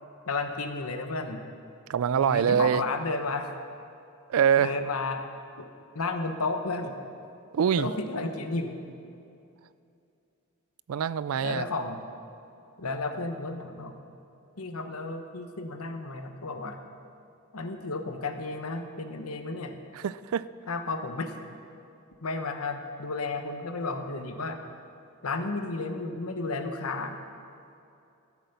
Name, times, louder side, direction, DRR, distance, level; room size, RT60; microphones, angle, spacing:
voice 1, 0.3-1.5 2.2-3.5 4.6-5.2 5.6-5.7 5.9-7.0 7.8-8.8 11.4-12.0 12.8-13.9 14.6-16.8 17.5-19.8 20.7-21.3 22.2-24.6 25.2-27.2, left 3 dB, 85° left, 6 dB, 1.1 m, -32 dB
voice 2, 1.9-2.8 4.3-4.7 7.5-7.9 10.9-11.7 20.0-20.5, right 8 dB, 75° right, 17 dB, 0.3 m, -24 dB
13.0 x 8.4 x 6.8 m, 2.6 s
head